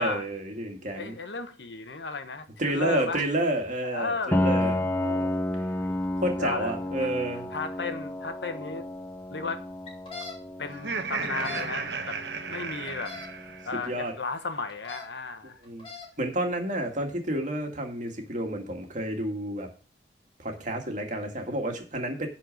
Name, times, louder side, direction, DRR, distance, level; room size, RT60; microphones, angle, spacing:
voice 1, 0.0-1.2 2.6-4.9 6.2-7.5 13.9-14.1 15.6-15.9 16.2-19.7 20.4-22.3, right 1 dB, 45° right, 2.1 m, -30 dB
voice 2, 0.9-3.3 3.8-4.5 4.9-6.0 6.4-6.7 7.0-7.1 7.5-8.9 9.3-9.6 10.6-12.2 12.5-13.1 13.6-15.6, left 3 dB, 75° left, 1.2 m, -34 dB
Piano, 4.3-13.9, left 1 dB, 10° left, 0.6 m, -32 dB
sound 1, 9.9-10.3 11.2-11.7 12.9-13.3 14.7-15.1 15.6-16.1, left 4 dB, 30° left, 4.2 m, -40 dB
Laughter, 10.7-13.9, right 4 dB, 65° right, 1.0 m, -34 dB
10.5 x 4.4 x 7.8 m
head